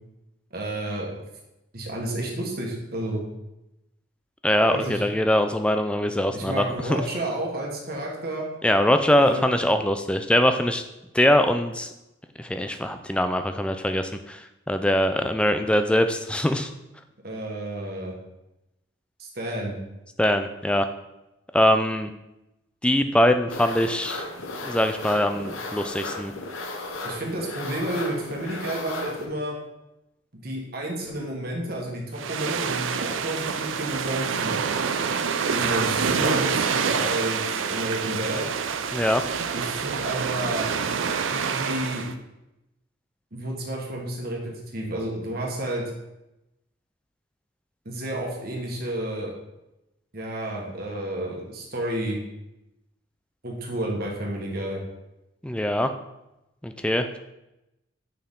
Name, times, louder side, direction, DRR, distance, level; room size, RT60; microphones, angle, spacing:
voice 1, 0.5-1.1 1.7-3.2 4.7-5.0 6.3-8.4 9.2-9.4 17.2-18.1 19.2-19.8 27.0-29.6 30.3-34.5 35.5-38.5 39.5-40.7 41.3-42.1 43.3-45.8 47.8-49.3 50.1-52.2 53.4-54.8, right 1 dB, 50° right, -1 dB, 1.4 m, -31 dB
voice 2, 4.4-7.0 8.6-10.8 11.1-11.9 12.4-16.7 20.2-20.9 21.5-22.1 22.8-24.2 24.6-26.3 38.9-39.2 55.4-55.9 56.6-57.2, left 1 dB, 5° left, 8 dB, 0.3 m, -22 dB
sound 1, 23.5-29.3, left 2 dB, 85° left, 0.9 m, -35 dB
sound 2, 32.2-42.1, right 6 dB, 75° right, 0.5 m, -27 dB
6.5 x 5.7 x 3.7 m, 0.93 s
head